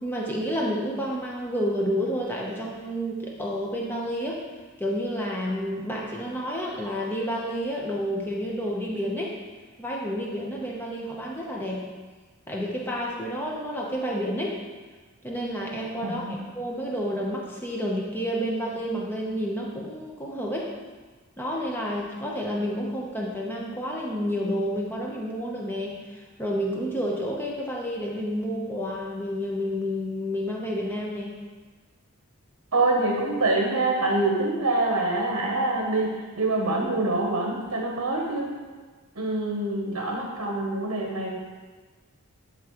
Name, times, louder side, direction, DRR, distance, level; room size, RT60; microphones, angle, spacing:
voice 1, 0.0-4.4 4.8-9.4 9.8-11.9 12.5-14.6 15.2-20.7 21.4-31.4, equal, 10° left, -3 dB, 0.8 m, -30 dB
voice 2, 16.0-16.4 32.7-38.5 39.2-41.4, right 2 dB, 70° right, -1 dB, 0.9 m, -25 dB
11.0 x 3.7 x 3.0 m, 1.4 s
head